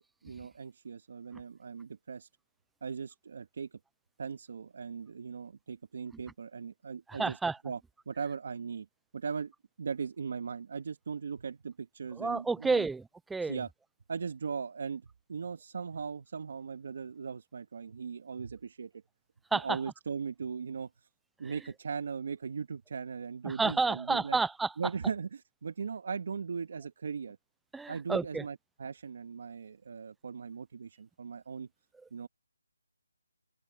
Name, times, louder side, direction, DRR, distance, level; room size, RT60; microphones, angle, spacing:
voice 1, 0.0-2.3 2.8-3.8 4.2-7.4 7.6-7.8 8.1-8.9 9.1-9.5 9.8-12.9 13.4-13.7 14.1-15.0 15.3-18.9 19.5-21.1 21.4-24.4 24.8-27.4 27.9-31.7 32.1-32.3, right 6 dB, 40° right, 2.1 m, -38 dB
voice 2, 7.1-7.6 12.2-13.6 19.5-19.8 21.4-21.5 23.4-24.7 27.7-28.4, right 4 dB, ahead, 0.4 m, -30 dB
open air
hypercardioid pair, 175°, 0 cm